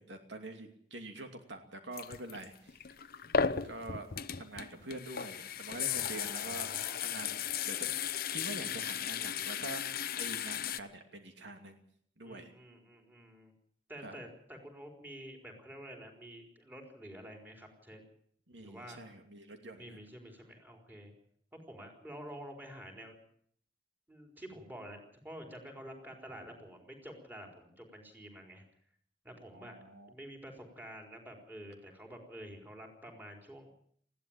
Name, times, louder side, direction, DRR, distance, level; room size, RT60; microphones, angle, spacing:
voice 1, 0.0-2.8 3.6-4.1 4.4-6.7 7.0-8.0 8.3-11.8 12.2-12.5 14.0-14.2 18.5-20.0 29.5-30.1, right 2 dB, 70° right, 5 dB, 2.7 m, -45 dB
sound 1, 1.9-10.8, left 7 dB, 55° left, 0.8 m, -35 dB
voice 2, 5.9-7.2 12.2-13.5 13.9-18.0 18.6-19.0 19.7-21.1 21.7-23.2 24.1-28.6 29.2-29.8 30.1-33.8, equal, 10° right, 2 dB, 4.4 m, -49 dB
20.0 x 15.5 x 8.9 m, 0.63 s
head